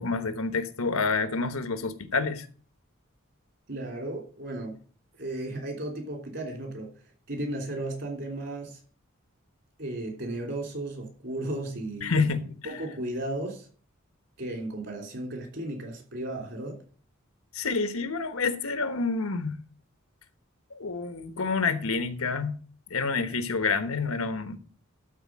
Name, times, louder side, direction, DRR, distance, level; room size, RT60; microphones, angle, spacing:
voice 1, 0.0-2.5 12.0-12.5 17.5-19.6 20.7-22.6 22.9-24.6, left 4 dB, 80° left, 1.2 m, -28 dB
voice 2, 3.7-4.7 5.2-6.9 7.3-8.8 9.8-12.1 12.6-13.7 14.4-16.8, right 1 dB, 55° right, 3.2 m, -34 dB
12.5 x 4.3 x 7.4 m
head